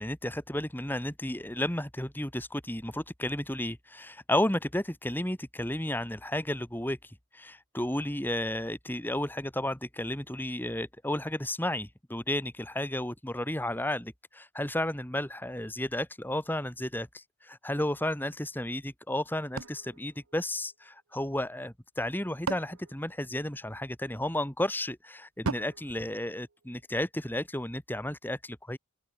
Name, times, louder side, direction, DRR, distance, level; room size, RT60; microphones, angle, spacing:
voice 1, 0.0-28.8, left 1 dB, 10° left, 2.0 m, -33 dB
sound 1, 19.6-21.1 22.0-23.9 25.4-27.0, right 3 dB, 75° right, 1.1 m, -40 dB
open air
head